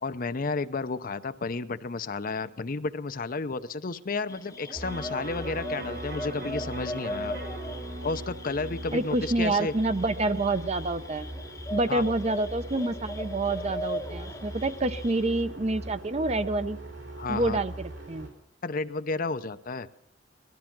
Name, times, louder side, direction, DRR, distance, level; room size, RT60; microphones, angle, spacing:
voice 1, 0.0-7.4 8.0-9.7 11.9-12.0 17.2-17.6 18.6-19.9, left 3 dB, 50° left, 12 dB, 0.7 m, -32 dB
sound 1, 4.3-15.4, left 1 dB, 20° left, 0.8 m, -40 dB
sound 2, 4.7-18.3, right 1 dB, 80° right, 4.2 m, -41 dB
Electric guitar, 4.8-11.0 11.4-11.5, right 1 dB, 60° right, 2.8 m, -42 dB
voice 2, 8.9-11.3 11.7-16.8 17.3-18.3, right 2 dB, 35° right, 12 dB, 0.7 m, -27 dB
18.5 x 12.5 x 6.0 m, 0.70 s
head